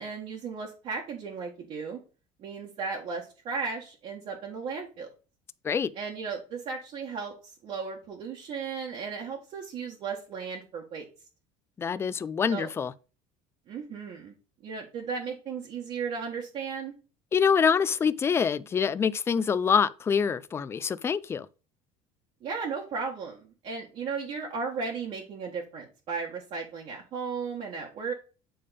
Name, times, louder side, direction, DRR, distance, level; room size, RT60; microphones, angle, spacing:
voice 1, 0.0-2.0 2.4-5.1 5.9-11.0 12.5-12.7 13.7-14.3 14.6-16.9 22.4-28.1, right 5 dB, 45° right, 1.6 m, -35 dB
voice 2, 11.8-12.9 17.3-21.5, left 6 dB, 20° left, 0.4 m, -25 dB
8.6 x 3.5 x 5.1 m
cardioid pair, 145°, 14 cm